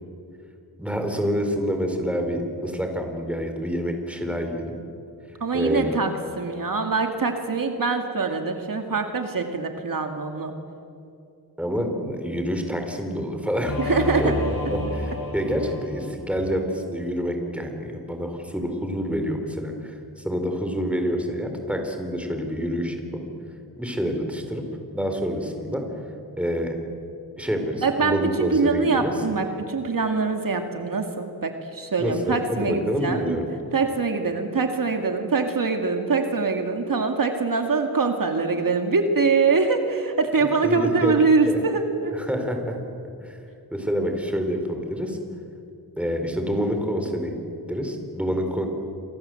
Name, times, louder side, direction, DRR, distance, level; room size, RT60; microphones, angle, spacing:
voice 1, 0.8-4.7 5.5-5.9 11.6-14.3 14.7-23.0 23.8-24.6 24.9-25.8 26.4-26.7 27.4-29.1 32.0-33.4 40.6-41.1 41.5-41.6 42.2-42.8 43.2-43.4 43.7-45.2 46.0-47.4 47.7-48.7, equal, 5° right, 4 dB, 4.3 m, -27 dB
voice 2, 5.4-6.1 6.4-10.5 13.8-14.4 15.6-15.7 27.8-33.4 33.7-42.2, right 4 dB, 60° right, 4 dB, 2.3 m, -23 dB
Singing / Musical instrument, 13.6-16.5, left 2 dB, 65° left, 4.3 m, -30 dB
28.5 x 25.0 x 7.8 m, 2.6 s
wide cardioid pair, 105°, 38 cm